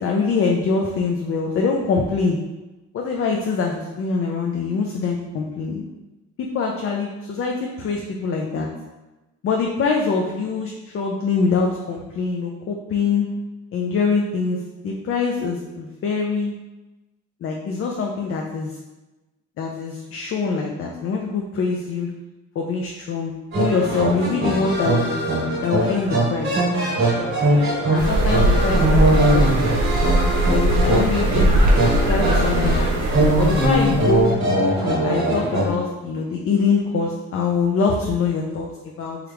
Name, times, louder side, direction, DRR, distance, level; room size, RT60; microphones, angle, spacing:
voice 1, 0.0-2.4 2.9-5.8 6.4-8.7 9.4-13.3 13.7-16.5 17.4-18.8 19.6-22.1 22.6-25.1 25.6-26.5 27.9-29.5 30.4-34.3 34.8-39.2, left 4 dB, 45° left, 0 dB, 0.4 m, -24 dB
sound 1, 23.5-35.7, right 1 dB, 45° right, 1.2 m, -21 dB
sound 2, 28.0-34.3, right 1 dB, 85° right, 0.6 m, -20 dB
3.1 x 2.4 x 3.3 m, 1.1 s
cardioid pair, 90°, 30 cm